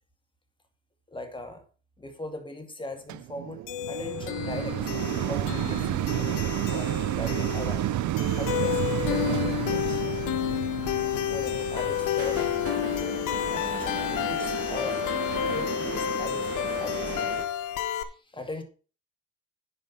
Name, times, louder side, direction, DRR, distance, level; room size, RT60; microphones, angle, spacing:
voice 1, 1.1-1.6 2.0-3.6 3.9-4.9 5.3-5.9 6.2-6.4 6.7-7.9 8.4-10.0 11.1-12.5 13.5-15.0 15.4-17.1 17.8-18.6, left 2 dB, 15° left, 2.3 m, -39 dB
sound 1, 3.1-14.4 15.0-15.1, right 15 dB, 70° right, 0.5 m, -31 dB
sound 2, 3.7-18.0, left 12 dB, 90° left, 1.1 m, -30 dB
sound 3, 7.2-17.4, right 5 dB, 50° right, 2.3 m, -38 dB
10.0 x 5.2 x 5.7 m
cardioid pair, 90°, 30 cm